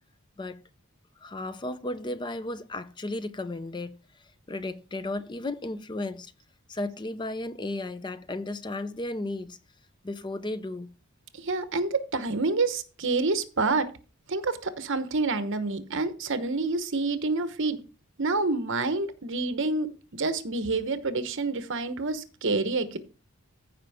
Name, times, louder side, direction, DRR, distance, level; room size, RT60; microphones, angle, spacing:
voice 1, 1.2-3.9 4.5-6.3 6.7-9.6 10.0-10.9, left 2 dB, 20° left, 0.5 m, -34 dB
voice 2, 11.3-13.9 14.3-17.8 18.2-19.9 20.1-23.0, right 3 dB, 60° right, 1.0 m, -28 dB
14.5 x 5.2 x 3.5 m
head